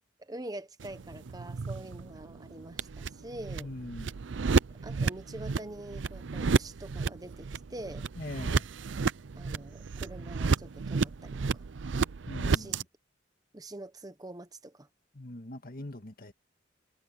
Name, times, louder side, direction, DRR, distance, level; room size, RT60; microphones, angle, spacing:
voice 1, 0.2-3.7 4.8-8.1 9.3-11.6 12.4-12.8 13.5-14.9, right 1 dB, 20° right, 1.0 m, -45 dB
sound 1, 0.8-12.8, right 5 dB, 80° right, 0.5 m, -32 dB
voice 2, 3.6-4.2 8.2-8.7 12.3-12.9 15.1-16.3, left 1 dB, 50° left, 1.9 m, -42 dB
head